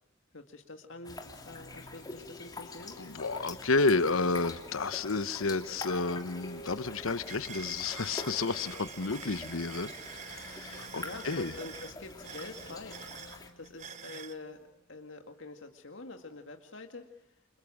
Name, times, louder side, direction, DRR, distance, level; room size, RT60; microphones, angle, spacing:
voice 1, 0.3-3.0 11.0-17.4, left 3 dB, 65° left, 5 dB, 2.0 m, -46 dB
sound 1, 0.9-15.5, left 1 dB, 50° left, 2.7 m, -55 dB
sound 2, 1.0-13.5, left 3 dB, 20° left, 2.8 m, -46 dB
voice 2, 3.0-11.5, left 3 dB, 90° left, 13 dB, 1.1 m, -31 dB
sound 3, 5.8-5.9 6.2-14.4, right 7 dB, 35° right, 1.0 m, -47 dB
29.5 x 26.5 x 6.3 m, 0.79 s
head